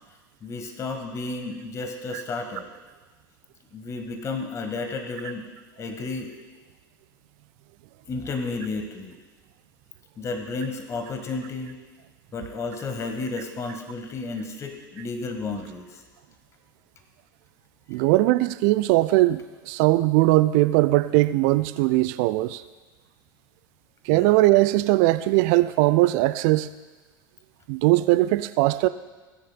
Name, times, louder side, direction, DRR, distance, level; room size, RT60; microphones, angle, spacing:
voice 1, 0.4-2.6 3.7-5.4 5.8-6.3 8.1-9.1 10.2-11.8 12.3-16.0 17.9-18.0 24.1-24.3, left 3 dB, 25° left, 5 dB, 1.4 m, -32 dB
voice 2, 17.9-19.4 19.7-22.6 24.1-26.7 27.7-28.9, right 18 dB, 50° right, 14 dB, 0.4 m, -20 dB
17.0 x 10.0 x 2.2 m, 1.3 s
figure-of-eight pair, 80°, 12 cm